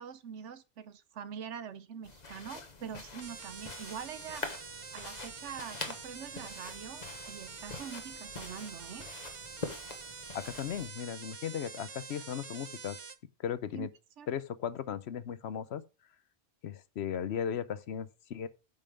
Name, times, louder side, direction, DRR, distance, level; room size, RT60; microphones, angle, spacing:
voice 1, 0.0-4.5 4.9-9.1 13.7-13.9 14.2-14.3, right 7 dB, 80° right, 1.1 m, -44 dB
sound 1, 2.0-10.9, left 3 dB, 35° left, 1.2 m, -45 dB
sound 2, 3.2-13.2, right 6 dB, 40° right, 0.5 m, -46 dB
voice 2, 10.3-13.0 13.4-13.9 14.3-15.8 16.6-18.5, left 8 dB, 70° left, 0.9 m, -36 dB
9.1 x 5.7 x 5.0 m
omnidirectional pair, 1.2 m